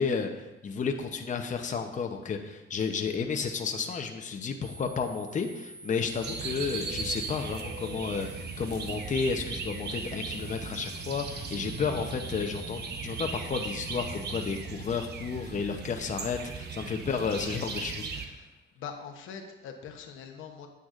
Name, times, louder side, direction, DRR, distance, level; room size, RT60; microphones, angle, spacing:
voice 1, 0.0-18.4, left 5 dB, 40° left, 4 dB, 0.8 m, -32 dB
sound 1, 4.6-14.6, right 1 dB, 70° right, 2.0 m, -48 dB
sound 2, 6.2-18.3, right 4 dB, 55° right, 0.9 m, -37 dB
voice 2, 18.7-20.7, left 6 dB, 85° left, 3 dB, 0.9 m, -42 dB
9.1 x 8.0 x 2.5 m, 1.1 s
cardioid pair, 90°, 20 cm